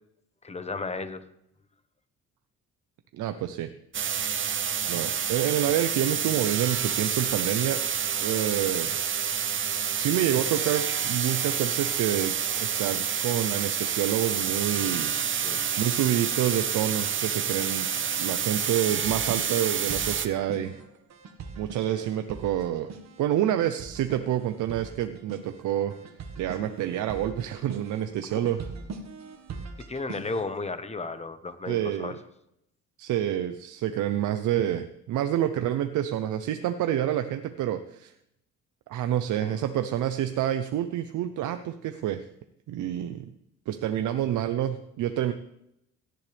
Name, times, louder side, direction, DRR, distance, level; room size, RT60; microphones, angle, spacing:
voice 1, 0.4-1.2 15.4-15.6 21.9-22.1 28.3-28.4 29.8-32.2 39.4-39.6, left 3 dB, 20° left, 10 dB, 1.2 m, -34 dB
voice 2, 3.1-3.7 4.9-7.8 8.2-9.4 10.0-17.9 18.2-20.8 21.6-22.9 23.2-26.0 26.4-28.6 31.7-32.1 33.0-38.1 38.9-42.3 42.7-43.2 43.7-45.3, right 11 dB, 80° right, 8 dB, 0.8 m, -28 dB
sound 1, 3.9-20.3, right 8 dB, 40° right, 0.8 m, -28 dB
sound 2, 19.0-30.6, right 4 dB, 60° right, 1.7 m, -42 dB
17.0 x 10.5 x 3.5 m, 0.78 s
cardioid pair, 90°, 30 cm